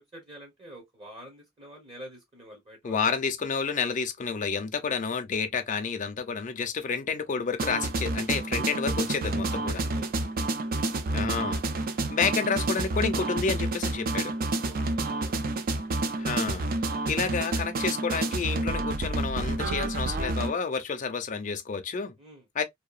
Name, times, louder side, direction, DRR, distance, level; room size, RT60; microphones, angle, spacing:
voice 1, 0.0-3.1 8.7-8.8 9.9-10.3 14.6-15.4 22.2-22.4, equal, 25° right, 0.8 m, -47 dB
voice 2, 2.8-9.9 11.1-11.6 12.1-14.3 16.2-16.7 17.1-22.1 22.6-22.7, left 5 dB, 40° left, 0.5 m, -30 dB
sound 1, 7.6-20.5, right 2 dB, 45° right, 0.4 m, -29 dB
2.8 x 2.3 x 2.3 m
head